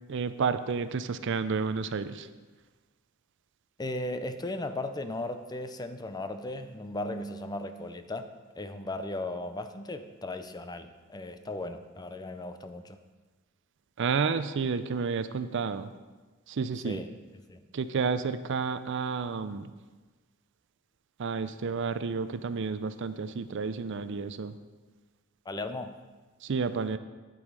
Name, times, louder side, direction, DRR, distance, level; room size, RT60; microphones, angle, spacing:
voice 1, 0.1-2.3 14.0-15.9 16.5-17.0 17.7-19.7 21.2-24.6 26.4-27.0, right 5 dB, 60° right, 12 dB, 0.5 m, -31 dB
voice 2, 3.8-8.3 8.6-13.0 16.8-17.1 17.3-17.6 25.5-26.0, left 2 dB, 20° left, 9 dB, 0.5 m, -36 dB
9.3 x 8.7 x 4.7 m, 1.3 s
head